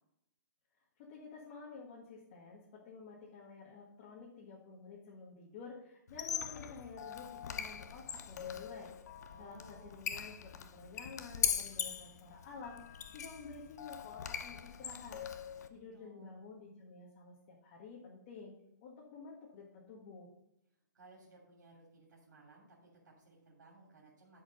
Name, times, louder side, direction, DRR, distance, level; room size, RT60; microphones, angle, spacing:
voice 1, 1.0-8.9 9.4-15.2 15.7-18.5 18.8-20.3, left 4 dB, 35° left, -4 dB, 1.7 m, -51 dB
Squeak, 6.1-15.7, left 8 dB, 60° left, 0.8 m, -41 dB
voice 2, 9.3-10.0 15.5-16.4 20.9-24.4, right 2 dB, 75° right, -3 dB, 3.0 m, -60 dB
11.0 x 5.1 x 5.2 m, 0.83 s
hypercardioid pair, 155°, 10 cm